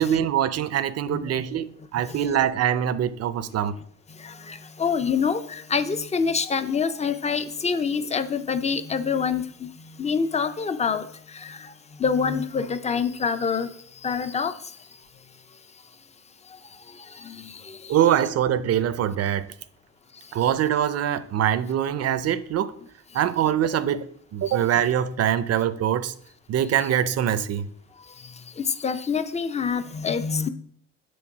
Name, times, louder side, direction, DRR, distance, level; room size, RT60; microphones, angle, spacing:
voice 1, 0.0-3.8 17.9-19.5 20.3-22.7 23.1-24.1 24.3-26.1 26.5-27.7, right 10 dB, 55° right, 0.5 m, -23 dB
voice 2, 4.2-9.7 10.0-11.1 11.4-11.6 12.0-13.7 14.0-14.5 17.2-17.4 28.6-30.5, left 6 dB, 20° left, 0.5 m, -26 dB
6.2 x 3.7 x 5.9 m
cardioid pair, 90°, 30 cm